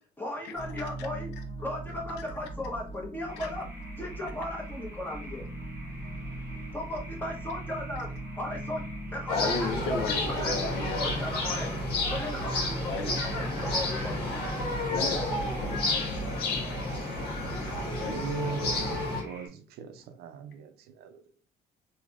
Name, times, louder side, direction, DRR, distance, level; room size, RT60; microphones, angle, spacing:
voice 1, 0.2-1.3 1.6-3.7 4.0-5.4 6.7-8.8 9.1-10.7 11.0-11.7 12.1-12.9 13.2-14.4, left 1 dB, 10° left, -1 dB, 1.1 m, -36 dB
sound 1, 0.6-18.3, right 1 dB, 35° left, 1.3 m, -40 dB
sound 2, 3.3-19.5, right 1 dB, 15° right, 0.9 m, -50 dB
voice 2, 5.9-6.7 9.3-11.2 12.9-13.1 14.4-14.5 14.9-16.4 17.9-18.3, left 5 dB, 90° left, 5 dB, 0.6 m, -36 dB
sound 3, 9.3-19.2, left 2 dB, 70° left, 1.5 m, -31 dB
voice 3, 18.0-21.2, right 7 dB, 70° right, 8 dB, 0.5 m, -39 dB
3.2 x 2.7 x 2.4 m, 0.39 s
cardioid pair, 110°, 17 cm